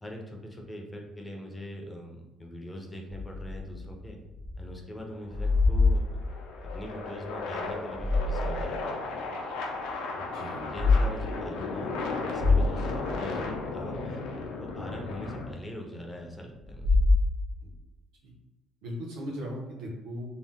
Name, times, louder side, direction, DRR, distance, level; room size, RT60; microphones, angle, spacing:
voice 1, 0.0-4.2 4.6-6.2 6.7-9.2 10.6-11.9 12.3-14.3 14.6-17.0, equal, 10° left, 1 dB, 0.4 m, -42 dB
sound 1, 3.1-4.7 5.0-6.8 7.7-8.8 9.2-9.3 10.6-11.0 11.4-11.6 12.0-12.1 12.3-13.6 16.6-17.8, left 3 dB, 45° right, 0.6 m, -26 dB
sound 2, 5.1-15.5, left 3 dB, 90° left, 0.4 m, -35 dB
voice 2, 10.3-10.6 17.6-17.7 18.2-18.3 18.8-20.4, equal, 80° right, -1 dB, 0.7 m, -38 dB
2.7 x 2.0 x 3.4 m, 1.0 s
cardioid pair, 170°, 0 cm